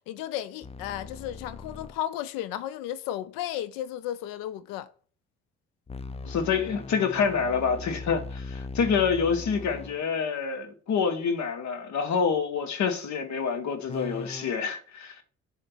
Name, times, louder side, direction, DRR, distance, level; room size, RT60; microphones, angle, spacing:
voice 1, 0.0-4.9, left 12 dB, 70° left, 0.6 m, -34 dB
sound 1, 0.6-2.0 5.9-10.0 13.9-14.5, left 3 dB, 20° left, 0.5 m, -39 dB
voice 2, 6.2-15.2, left 6 dB, 50° left, 1.3 m, -27 dB
7.7 x 2.8 x 6.0 m
hypercardioid pair, 50°, 35 cm